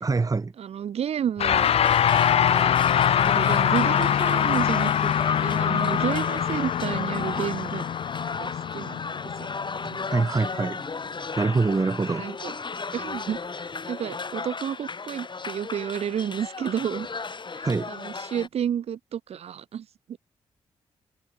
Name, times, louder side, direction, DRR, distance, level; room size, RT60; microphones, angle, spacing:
voice 1, 0.0-0.5 9.8-10.8 11.4-12.3 17.6-17.9, right 4 dB, 30° right, 0.9 m, -25 dB
voice 2, 0.6-1.7 2.5-2.8 3.2-5.1 5.4-7.8 8.4-9.0 9.4-9.5 12.1-12.6 12.9-17.1 17.6-20.2, right 9 dB, 60° right, 0.5 m, -31 dB
sound 1, 1.4-10.9, left 9 dB, 55° left, 0.4 m, -24 dB
sound 2, 1.5-18.5, left 4 dB, 40° left, 2.5 m, -34 dB
supercardioid pair, 45°, 12 cm